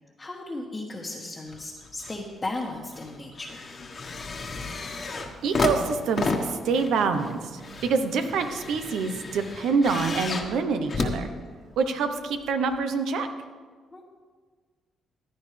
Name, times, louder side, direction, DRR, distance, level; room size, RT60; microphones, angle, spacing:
voice 1, 0.2-3.8 13.9-14.1, left 2 dB, 20° left, -3 dB, 1.3 m, -36 dB
sound 1, 1.5-2.2 2.6-11.9 12.7-12.8, left 3 dB, 40° left, 1.4 m, -32 dB
sound 2, 4.4-9.5, right 4 dB, 35° right, 1.3 m, -49 dB
voice 2, 5.4-11.3 11.8-13.3, right 4 dB, 80° right, 8 dB, 0.9 m, -26 dB
15.0 x 10.0 x 3.4 m, 1.5 s
cardioid pair, 90°, 0 cm